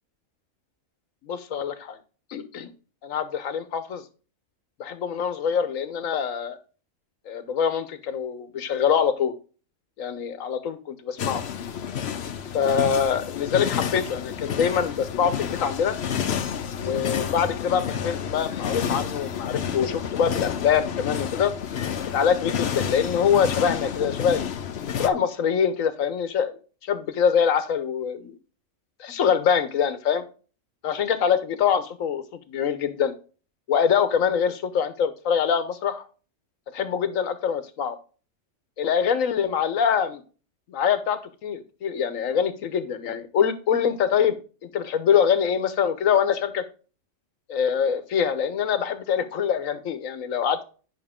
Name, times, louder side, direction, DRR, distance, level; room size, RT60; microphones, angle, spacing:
voice 1, 1.2-2.0 2.3-2.7 3.0-4.0 4.8-6.6 7.3-9.4 10.0-11.4 12.5-16.0 16.8-21.5 22.1-24.5 25.0-26.5 26.8-28.3 29.0-30.2 30.8-33.1 33.7-36.0 36.7-38.0 38.8-40.2 40.7-44.4 44.7-46.6 47.5-50.6, left 7 dB, 85° left, 11 dB, 1.3 m, -24 dB
sound 1, 11.2-25.1, left 8 dB, 60° left, 0.9 m, -30 dB
9.5 x 5.8 x 3.6 m, 0.36 s
omnidirectional pair, 1.3 m